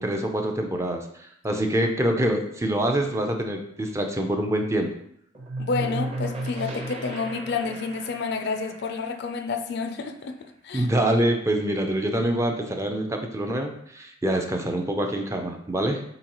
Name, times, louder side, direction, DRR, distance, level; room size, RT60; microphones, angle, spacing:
voice 1, 0.0-4.9 10.7-16.0, right 1 dB, 15° right, 4 dB, 0.4 m, -25 dB
sound 1, 5.3-10.9, right 1 dB, 30° right, 0.8 m, -42 dB
sound 2, 5.4-8.2, right 1 dB, 75° right, 0.5 m, -33 dB
voice 2, 5.6-10.4 10.6-10.9, left 4 dB, 55° left, 7 dB, 0.4 m, -29 dB
4.5 x 3.9 x 2.9 m, 0.70 s
head